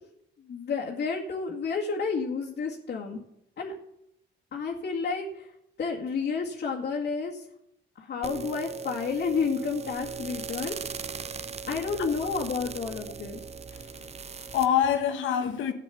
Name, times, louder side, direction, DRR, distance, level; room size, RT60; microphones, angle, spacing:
voice 1, 0.5-3.2 3.6-3.7 4.5-5.5 5.8-7.5 8.0-10.7 11.7-13.4, left 5 dB, 55° left, 2.1 m, -30 dB
sound 1, 8.2-14.7, right 5 dB, 35° right, 0.6 m, -38 dB
voice 2, 13.7-15.7, left 9 dB, 80° left, 1.3 m, -27 dB
12.5 x 8.9 x 7.0 m
cardioid pair, 90°, 20 cm